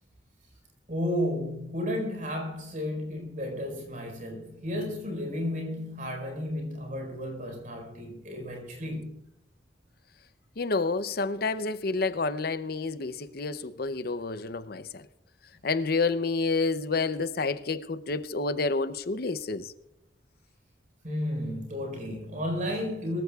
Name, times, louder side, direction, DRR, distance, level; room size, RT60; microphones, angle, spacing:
voice 1, 0.9-9.3 21.0-23.2, left 1 dB, 45° right, 4.7 m, -33 dB
voice 2, 10.6-15.0 15.6-19.7, left 3 dB, 55° left, 0.6 m, -29 dB
23.0 x 14.5 x 2.4 m
head